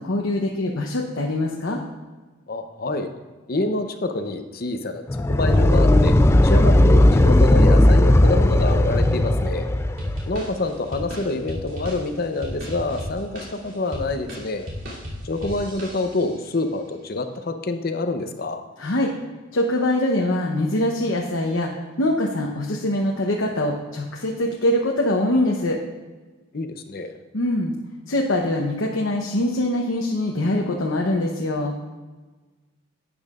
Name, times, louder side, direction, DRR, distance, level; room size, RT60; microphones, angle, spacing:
voice 1, 0.0-1.8 18.8-19.1 19.5-21.7 22.0-25.8 27.3-27.7 28.1-31.8, left 1 dB, 80° left, 0 dB, 0.9 m, -23 dB
voice 2, 2.5-3.1 3.5-5.0 5.3-6.1 6.4-9.7 10.3-14.7 15.2-18.6 26.5-27.2, left 2 dB, 50° left, 7 dB, 0.7 m, -27 dB
sound 1, 5.1-10.3, left 1 dB, 15° left, 0.3 m, -16 dB
sound 2, 10.0-16.4, equal, 75° right, 2.9 m, -35 dB
12.0 x 8.7 x 2.4 m, 1.3 s
head